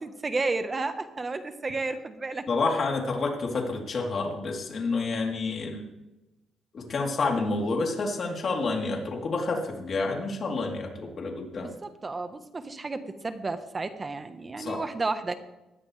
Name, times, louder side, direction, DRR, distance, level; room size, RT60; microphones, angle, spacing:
voice 1, 0.0-2.5 11.6-15.3, right 3 dB, 30° right, 9 dB, 1.3 m, -32 dB
voice 2, 2.5-5.8 6.7-11.7 14.6-14.8, left 3 dB, 50° left, 0 dB, 3.6 m, -29 dB
19.5 x 13.5 x 3.4 m, 0.99 s
cardioid pair, 90°, 0 cm